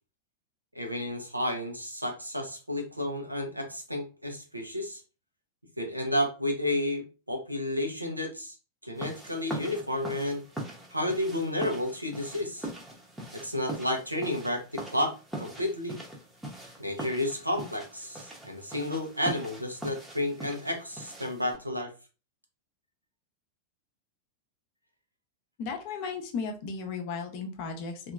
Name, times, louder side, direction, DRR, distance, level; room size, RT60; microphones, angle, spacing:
voice 1, 0.7-5.0 5.8-8.5 8.8-10.4 10.9-12.7 13.3-16.0 16.8-21.9, left 1 dB, 85° right, 3 dB, 0.7 m, -31 dB
sound 1, 9.0-21.6, right 2 dB, 10° right, 0.8 m, -42 dB
voice 2, 25.6-28.1, left 5 dB, 45° left, 4 dB, 0.7 m, -35 dB
2.9 x 2.5 x 2.3 m, 0.33 s
figure-of-eight pair, 90°, 0 cm